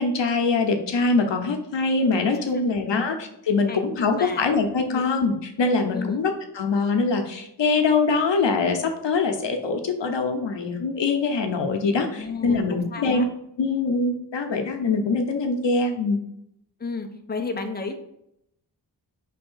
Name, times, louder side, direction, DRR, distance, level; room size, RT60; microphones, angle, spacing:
voice 1, 0.0-13.3 13.6-16.2, left 4 dB, 80° left, 4 dB, 0.9 m, -23 dB
voice 2, 2.3-3.0 3.7-4.5 4.9-5.1 5.9-6.2 12.1-13.2 16.8-17.9, left 4 dB, 20° left, 4 dB, 0.7 m, -33 dB
5.1 x 3.4 x 5.5 m, 0.78 s
wide cardioid pair, 90°, 43 cm